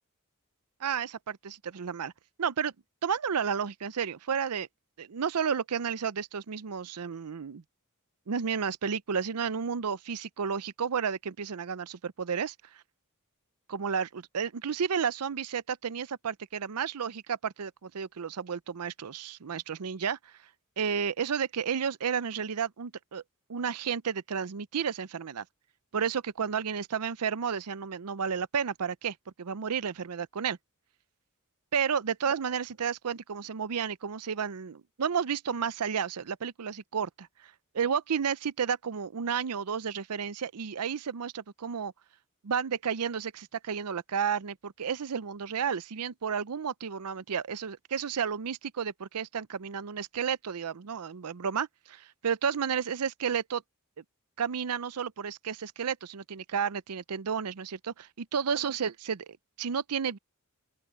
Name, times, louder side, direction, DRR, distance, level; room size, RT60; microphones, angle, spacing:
voice 1, 0.8-2.1 2.4-2.7 3.0-4.7 5.0-7.6 8.3-12.8 13.7-20.3 20.8-23.2 23.5-25.4 25.9-30.6 31.7-41.9 42.4-53.6 54.4-60.2, right 7 dB, 85° right, 0.6 m, -32 dB
open air
head